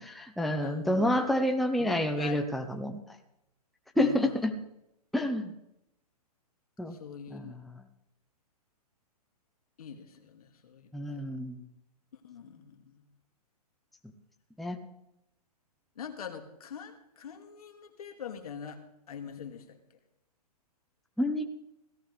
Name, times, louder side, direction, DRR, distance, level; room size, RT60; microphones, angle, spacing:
voice 1, 0.0-3.0 4.0-4.5 5.1-5.5 6.8-7.0 7.3-7.5 10.9-11.6 14.6-14.8 21.2-21.4, left 1 dB, ahead, 5 dB, 0.8 m, -28 dB
voice 2, 0.6-1.4 1.8-2.4 4.0-4.5 6.9-7.6 9.8-11.4 12.2-13.0 16.0-18.8 19.1-19.8, left 7 dB, 65° left, 6 dB, 2.4 m, -43 dB
17.0 x 14.5 x 3.4 m, 0.83 s
hypercardioid pair, 140°, 20 cm